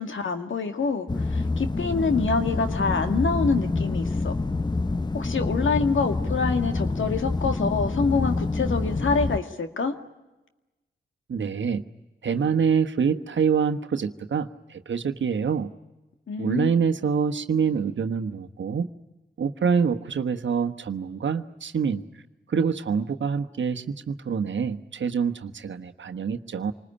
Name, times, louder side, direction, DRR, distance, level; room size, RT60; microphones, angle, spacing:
voice 1, 0.0-4.3 5.1-9.9 16.3-16.7, left 4 dB, 70° left, 7 dB, 2.1 m, -26 dB
sound 1, 1.1-9.4, left 3 dB, 20° left, 0.8 m, -27 dB
voice 2, 11.3-11.8 12.2-15.7 16.4-18.9 19.4-22.0 22.5-26.7, right 6 dB, 65° right, 9 dB, 1.3 m, -26 dB
27.5 x 20.0 x 10.0 m, 1.1 s
supercardioid pair, 40°, 21 cm